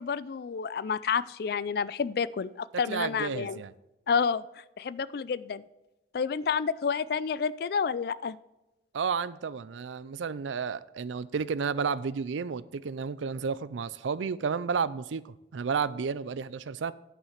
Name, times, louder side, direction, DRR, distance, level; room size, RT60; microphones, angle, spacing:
voice 1, 0.0-3.6 4.1-4.4 4.8-5.6 6.1-8.4, left 6 dB, 55° left, 18 dB, 0.3 m, -29 dB
voice 2, 2.9-3.7 8.9-16.9, right 6 dB, 90° right, 17 dB, 0.4 m, -32 dB
9.8 x 5.7 x 5.8 m, 0.97 s
head